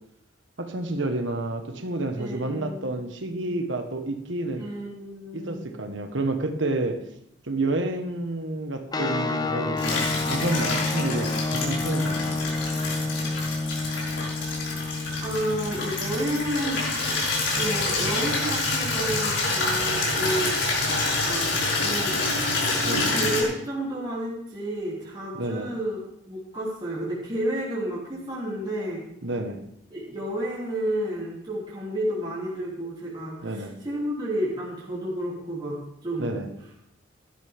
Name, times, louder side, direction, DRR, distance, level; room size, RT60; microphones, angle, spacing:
voice 1, 0.6-4.7 5.3-7.0 7.5-12.3 22.8-23.1 25.3-25.7 29.2-29.6 33.4-33.7 36.2-36.5, right 2 dB, 70° right, 6 dB, 1.5 m, -29 dB
voice 2, 2.2-3.0 4.6-5.9 15.2-17.2 17.6-20.6 21.2-22.2 23.1-26.0 26.3-29.0 29.9-36.3, right 1 dB, 25° right, -7 dB, 3.3 m, -31 dB
sound 1, 8.9-20.1, left 3 dB, 20° left, 0.7 m, -31 dB
Water tap faucet / Liquid, 9.8-23.4, left 2 dB, 70° left, 5.4 m, -27 dB
17.0 x 12.0 x 3.7 m, 0.76 s
head